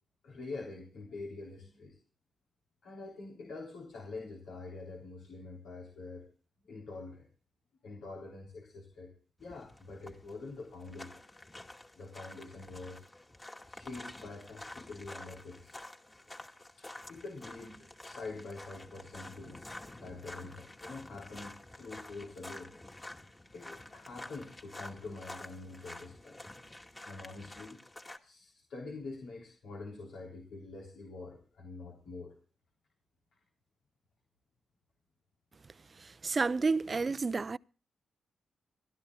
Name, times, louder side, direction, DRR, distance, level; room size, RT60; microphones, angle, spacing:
voice 1, 0.2-2.0 2.8-6.3 6.6-7.3 7.8-9.1 9.4-11.2 11.9-13.1 13.7-15.7 16.8-19.7 20.0-22.7 23.5-26.4 27.0-27.8 28.2-32.3, left 3 dB, 80° left, 3.7 m, -45 dB
sound 1, 9.4-28.2, left 1 dB, 25° left, 2.3 m, -49 dB
voice 2, 36.2-37.6, right 4 dB, 40° right, 0.6 m, -30 dB
26.0 x 12.5 x 2.3 m
supercardioid pair, 55°, 0 cm